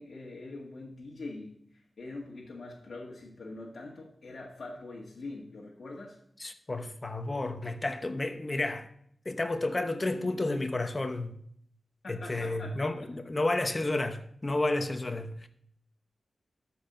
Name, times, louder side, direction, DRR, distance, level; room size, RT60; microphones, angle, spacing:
voice 1, 0.0-6.2 12.0-12.9, left 2 dB, 70° left, 1.7 m, -43 dB
voice 2, 6.4-8.9 9.2-11.4 12.1-15.5, left 2 dB, 30° left, 1.0 m, -31 dB
12.5 x 4.5 x 6.6 m
wide cardioid pair, 80°, 0 cm